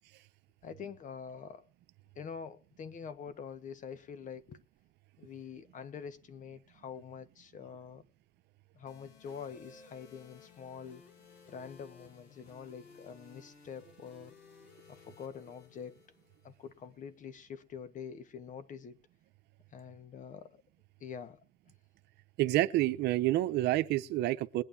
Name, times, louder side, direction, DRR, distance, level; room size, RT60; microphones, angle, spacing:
voice 1, 0.6-1.7 2.1-4.6 5.2-8.0 8.7-11.0 11.5-14.3 14.9-15.9 16.4-19.0 19.7-20.6 21.0-21.4, left 7 dB, 50° left, 1.5 m, -46 dB
sound 1, 8.9-16.9, left 5 dB, 80° left, 4.4 m, -58 dB
voice 2, 22.4-24.6, right 16 dB, 80° right, 0.8 m, -28 dB
21.5 x 9.3 x 2.8 m
cardioid pair, 110°, 17 cm